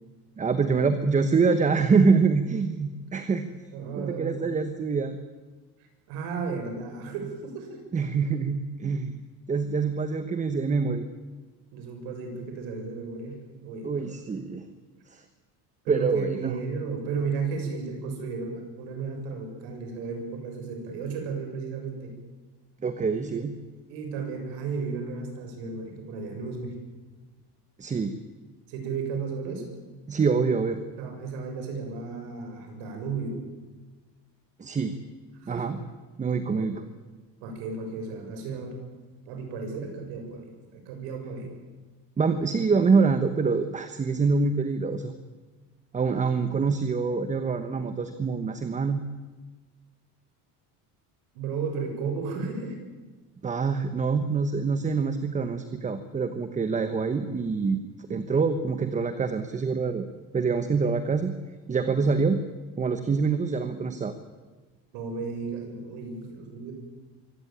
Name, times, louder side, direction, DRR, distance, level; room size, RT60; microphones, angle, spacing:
voice 1, 0.4-3.5 4.0-5.2 7.9-9.2 9.5-11.1 13.8-14.7 15.1-15.2 15.9-16.6 22.8-23.6 27.8-28.1 30.1-30.8 34.6-35.0 35.5-35.8 36.2-36.8 42.2-45.1 45.9-49.0 53.4-57.8 58.1-60.1 60.3-61.3 61.7-62.4 62.8-64.1, right 4 dB, 20° right, 10 dB, 1.0 m, -25 dB
voice 2, 3.7-4.3 6.1-7.8 11.7-14.3 15.8-22.1 23.9-26.8 28.7-29.7 31.0-33.4 35.4-35.7 36.5-36.7 37.4-38.8 39.3-41.5 51.3-52.8 64.9-66.7, right 4 dB, 85° right, 3 dB, 6.9 m, -34 dB
23.5 x 17.0 x 8.8 m, 1.3 s
cardioid pair, 150°, 41 cm